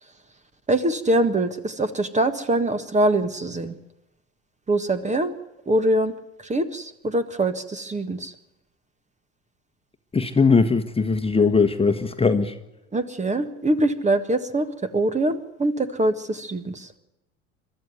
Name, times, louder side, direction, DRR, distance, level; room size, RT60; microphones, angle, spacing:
voice 1, 0.7-3.7 4.7-5.3 5.6-6.1 6.4-8.3 12.9-14.7 14.9-16.9, right 1 dB, 20° right, 11 dB, 1.7 m, -23 dB
voice 2, 10.1-12.5, left 4 dB, 15° left, 7 dB, 1.4 m, -20 dB
22.5 x 13.0 x 9.4 m, 0.96 s
hypercardioid pair, 75°, 33 cm